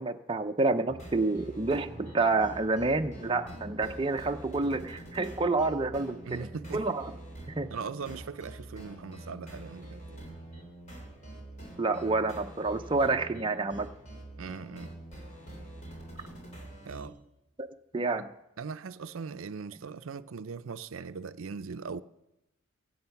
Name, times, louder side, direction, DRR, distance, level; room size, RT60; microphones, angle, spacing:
voice 1, 0.0-7.1 7.5-7.7 11.8-13.9 17.6-17.7 17.9-18.3, right 3 dB, 25° right, 0.5 m, -29 dB
sound 1, 0.9-17.1, right 1 dB, 35° left, 3.6 m, -46 dB
voice 2, 6.2-7.0 7.7-10.4 14.4-14.9 16.8-17.2 18.2-18.3 18.6-22.0, right 5 dB, 70° right, 0.5 m, -40 dB
sound 2, 17.3-17.7, equal, 10° left, 5.1 m, -58 dB
23.5 x 7.9 x 5.8 m
head